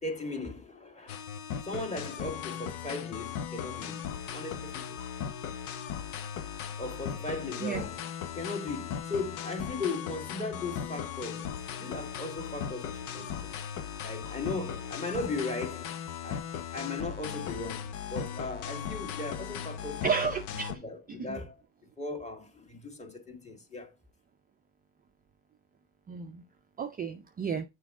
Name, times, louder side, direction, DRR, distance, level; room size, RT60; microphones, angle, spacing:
voice 1, 0.0-1.2 1.6-4.0 4.3-5.0 6.8-8.0 8.3-13.5 14.0-15.9 16.2-16.5 16.7-20.0 20.7-21.6 22.0-23.9, left 3 dB, 15° left, 1.8 m, -37 dB
sound 1, 1.1-20.8, left 8 dB, 75° left, 1.1 m, -38 dB
voice 2, 20.0-20.8 21.3-21.4 26.1-26.4 26.8-27.6, right 6 dB, 20° right, 0.5 m, -32 dB
7.1 x 4.6 x 3.6 m
supercardioid pair, 105°, 42 cm